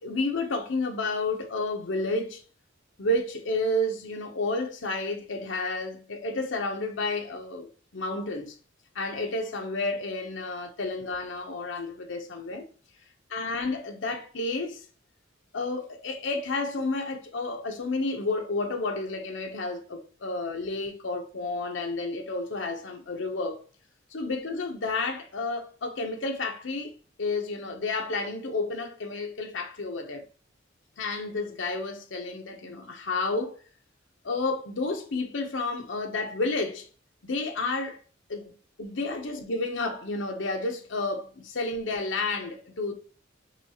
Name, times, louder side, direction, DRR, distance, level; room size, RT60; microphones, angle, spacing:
voice 1, 0.0-2.4 3.0-8.5 8.9-12.6 13.3-14.9 15.5-23.6 24.1-26.9 27.2-30.2 31.0-33.6 34.2-36.9 37.3-38.0 38.3-42.9, left 2 dB, 70° left, 0.8 m, -31 dB
5.9 x 2.3 x 2.9 m
head